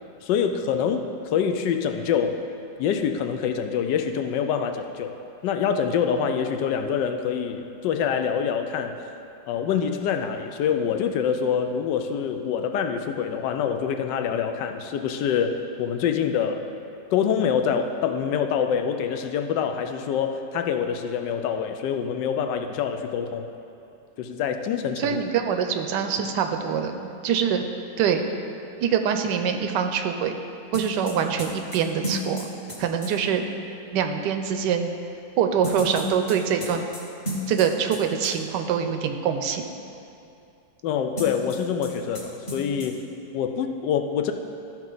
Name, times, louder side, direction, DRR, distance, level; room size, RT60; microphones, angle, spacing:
voice 1, 0.2-2.4 2.8-5.2 5.4-9.0 9.5-16.7 17.1-23.5 24.2-25.2 40.8-43.0 43.3-44.3, left 7 dB, 80° left, 6 dB, 1.2 m, -25 dB
voice 2, 25.0-27.6 28.0-28.3 28.8-30.4 30.7-32.5 32.8-33.4 33.9-34.9 35.4-36.8 37.5-39.7, right 7 dB, 80° right, 6 dB, 1.2 m, -24 dB
sound 1, 30.7-33.1 35.6-38.0 38.2-38.3 41.2-41.9 42.1-42.2 42.5-42.9, equal, 25° left, 1.2 m, -32 dB
13.0 x 4.5 x 3.8 m, 2.7 s
omnidirectional pair, 1.9 m